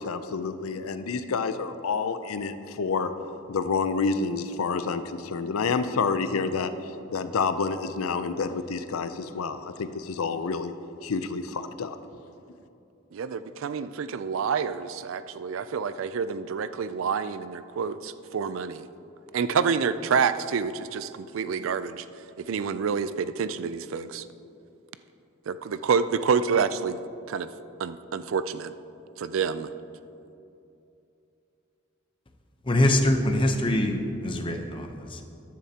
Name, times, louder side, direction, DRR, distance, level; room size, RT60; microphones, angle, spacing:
voice 1, 0.0-3.1 3.5-6.7 7.1-10.7 11.0-12.0, left 5 dB, 85° left, 10 dB, 0.5 m, -28 dB
voice 2, 13.1-18.9 19.3-22.0 22.4-24.2 25.5-27.0 27.3-27.5 27.8-28.7 29.2-29.7, right 6 dB, 70° right, 13 dB, 0.4 m, -28 dB
voice 3, 32.6-35.2, left 1 dB, 25° left, 4 dB, 0.7 m, -24 dB
14.0 x 10.0 x 2.9 m, 2.8 s
head